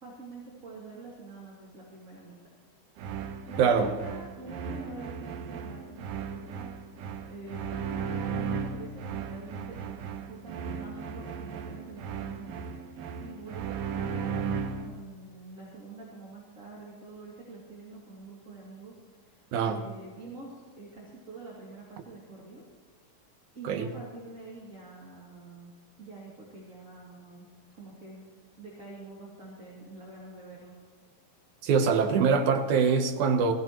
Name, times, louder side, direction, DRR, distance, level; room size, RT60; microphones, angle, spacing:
voice 1, 0.0-2.4 3.5-9.8 10.3-19.3 19.6-22.6 23.5-25.7 26.0-27.5 27.8-28.2 28.6-30.8, right 2 dB, 25° right, -5 dB, 2.6 m, -46 dB
sound 1, 3.0-15.0, right 6 dB, 85° right, 2.6 m, -36 dB
voice 2, 3.6-3.9 19.5-19.8 23.6-23.9 31.6-33.5, right 5 dB, 70° right, 6 dB, 2.3 m, -24 dB
20.5 x 15.0 x 3.0 m, 1.4 s
omnidirectional pair, 4.0 m